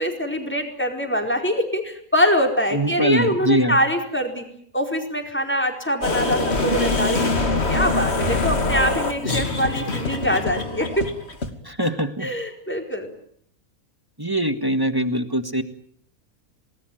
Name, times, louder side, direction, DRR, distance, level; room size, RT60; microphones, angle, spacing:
voice 1, 0.0-4.4 4.7-11.1 12.2-13.1, equal, 5° left, 3 dB, 4.7 m, -24 dB
voice 2, 2.7-3.8 11.7-12.3 14.2-15.6, right 1 dB, 15° right, 8 dB, 1.8 m, -22 dB
sound 1, 6.0-11.5, left 2 dB, 45° left, 2.9 m, -23 dB
27.5 x 19.5 x 9.4 m, 0.65 s
omnidirectional pair, 1.5 m